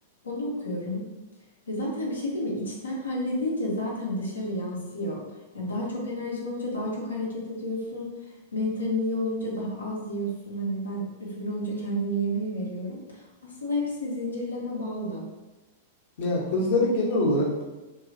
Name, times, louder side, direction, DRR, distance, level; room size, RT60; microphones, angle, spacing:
voice 1, 0.2-1.1 1.7-5.2 5.5-8.1 8.5-15.2, equal, 85° left, -4 dB, 0.8 m, -31 dB
voice 2, 16.2-17.6, left 1 dB, 60° left, -3 dB, 0.9 m, -24 dB
2.9 x 2.3 x 2.6 m, 1.1 s
figure-of-eight pair, 100°, 0 cm